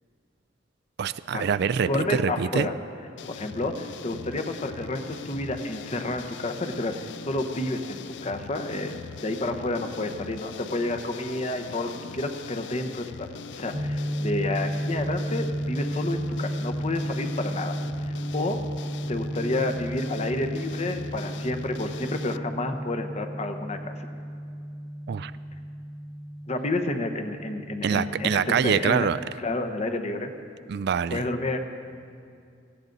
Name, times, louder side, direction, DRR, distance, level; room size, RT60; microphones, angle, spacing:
voice 1, 1.0-2.7 25.1-25.3 27.8-29.2 30.7-31.2, right 7 dB, 60° right, 15 dB, 0.4 m, -25 dB
voice 2, 1.8-2.7 3.3-6.9 7.3-13.3 13.6-17.8 18.1-18.6 19.1-24.0 26.5-29.1 29.4-30.3 31.1-31.6, left 2 dB, 35° left, 6 dB, 1.0 m, -30 dB
sound 1, 3.2-22.4, left 6 dB, 65° left, 0.4 m, -41 dB
sound 2, 13.7-29.3, equal, 15° right, 1.0 m, -33 dB
18.0 x 15.5 x 4.0 m, 2.4 s
head